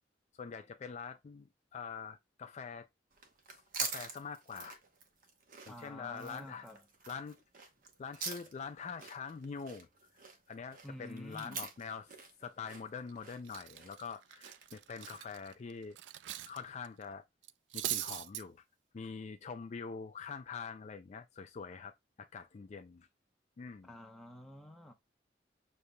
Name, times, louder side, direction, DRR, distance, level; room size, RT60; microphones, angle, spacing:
voice 1, 0.3-2.9 3.8-4.8 5.7-6.7 7.1-7.4 8.0-9.9 10.5-12.1 12.4-16.0 16.5-17.2 17.7-18.6 18.9-23.1 23.6-23.9, left 5 dB, 40° left, 0.3 m, -44 dB
sound 1, 3.1-15.4, right 4 dB, 50° right, 0.9 m, -46 dB
voice 2, 5.7-6.9 10.8-11.7 23.8-24.9, left 1 dB, ahead, 0.8 m, -49 dB
Cutlery silverware, 12.9-13.1 13.5-16.6 16.8-17.0 17.4-18.4, right 13 dB, 80° right, 0.3 m, -41 dB
6.5 x 2.7 x 2.2 m
head